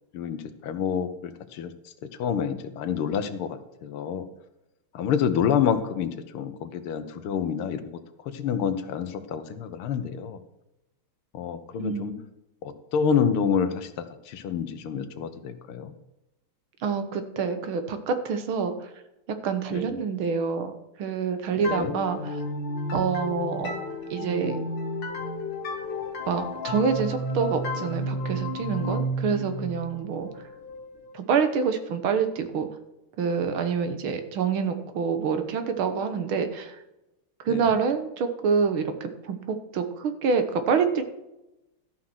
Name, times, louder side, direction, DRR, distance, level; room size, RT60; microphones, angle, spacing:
voice 1, 0.1-1.7 2.2-4.3 4.9-8.0 8.3-10.4 11.3-12.1 12.6-15.9 19.7-19.9 21.7-21.9 37.5-37.6, left 7 dB, 85° left, 10 dB, 1.9 m, -28 dB
voice 2, 11.8-12.2 16.8-18.9 19.4-20.7 21.0-22.4 22.9-23.7 24.1-24.6 26.3-30.3 31.1-32.7 33.2-36.8 37.5-41.1, right 6 dB, 70° right, 8 dB, 1.9 m, -27 dB
sound 1, 21.6-31.2, equal, 60° left, 2.4 m, -32 dB
13.0 x 5.8 x 6.2 m, 0.93 s
omnidirectional pair, 2.4 m